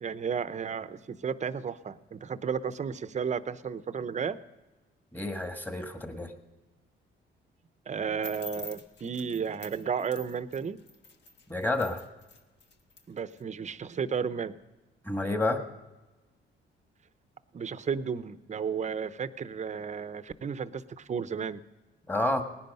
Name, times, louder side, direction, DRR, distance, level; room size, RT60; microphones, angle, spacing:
voice 1, 0.0-4.4 7.9-10.8 13.1-14.5 17.5-21.6, right 6 dB, 35° right, 14 dB, 0.7 m, -33 dB
voice 2, 5.1-6.3 11.5-12.0 15.0-15.6 22.1-22.4, left 2 dB, 10° left, 6 dB, 1.6 m, -29 dB
sound 1, 8.2-13.4, left 3 dB, 60° left, 1.4 m, -48 dB
18.5 x 10.5 x 5.4 m, 1.1 s
cardioid pair, 90°, 20 cm